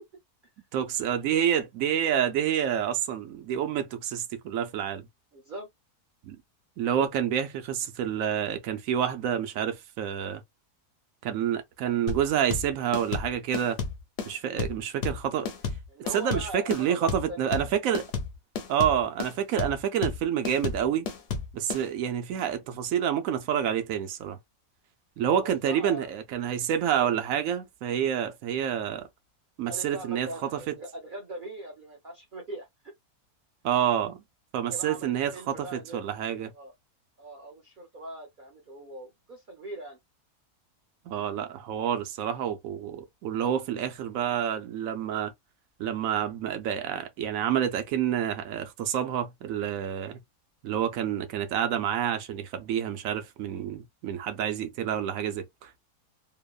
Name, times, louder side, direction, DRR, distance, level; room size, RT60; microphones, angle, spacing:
voice 1, 0.7-5.1 6.2-6.4 6.8-10.4 11.2-13.8 14.3-15.5 16.1-18.0 18.7-21.1 21.5-24.4 25.2-29.1 29.6-30.3 33.6-34.2 34.5-36.5 41.1-45.3 45.8-50.2 50.6-55.8, right 9 dB, 65° right, 0.9 m, -28 dB
voice 2, 5.3-5.7 7.0-7.1 15.9-17.7 25.3-26.2 26.8-27.1 29.7-32.7 34.6-36.7 37.2-40.0, right 1 dB, 45° right, 0.7 m, -41 dB
sound 1, 12.1-21.8, left 5 dB, 55° left, 0.7 m, -32 dB
2.9 x 2.1 x 2.3 m
omnidirectional pair, 1.6 m